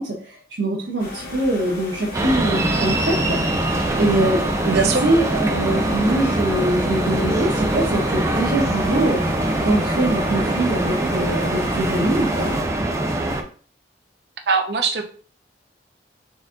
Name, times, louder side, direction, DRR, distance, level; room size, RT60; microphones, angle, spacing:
voice 1, 0.0-3.4 3.7-4.4 4.7-12.5, right 1 dB, 90° right, -4 dB, 0.9 m, -23 dB
sound 1, 1.0-12.6, left 2 dB, 55° left, 1.4 m, -35 dB
sound 2, 2.1-13.4, right 1 dB, 15° right, 0.4 m, -23 dB
voice 2, 4.7-5.0 14.5-15.0, right 4 dB, 65° right, 5 dB, 0.6 m, -20 dB
4.1 x 2.6 x 3.7 m, 0.43 s
head